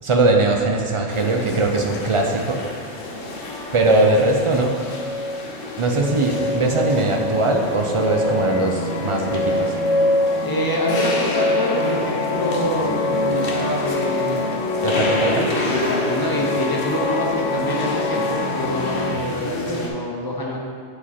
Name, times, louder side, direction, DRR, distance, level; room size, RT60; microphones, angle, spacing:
voice 1, 0.0-2.6 3.7-4.7 5.8-9.7 14.8-15.5, right 2 dB, 50° right, 1 dB, 0.4 m, -20 dB
sound 1, 1.1-19.9, left 2 dB, 55° left, 1.0 m, -30 dB
sound 2, 3.4-3.5 3.8-19.2, left 2 dB, 85° left, 1.0 m, -25 dB
voice 2, 10.5-14.5 16.1-20.6, equal, 25° left, -2 dB, 0.7 m, -26 dB
7.2 x 4.4 x 4.2 m, 2.1 s
omnidirectional pair, 1.2 m